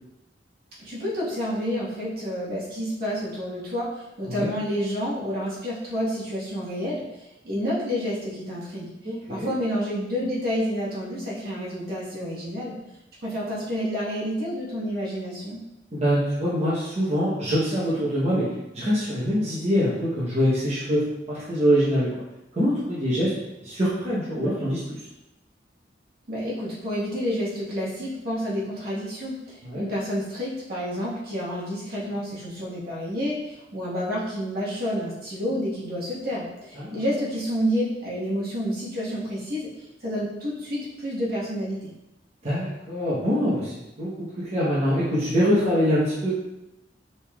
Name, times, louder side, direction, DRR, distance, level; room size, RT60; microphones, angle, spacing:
voice 1, 0.8-12.7 13.2-15.6 26.3-39.7 40.0-41.9, equal, 60° right, -6 dB, 1.4 m, -29 dB
voice 2, 9.0-9.5 15.9-18.5 18.7-22.1 22.5-23.3 23.6-25.0 29.6-29.8 36.8-37.0 42.4-43.7 44.0-44.1 44.5-46.3, equal, 40° right, -10 dB, 1.0 m, -24 dB
5.2 x 3.5 x 2.4 m, 0.94 s
head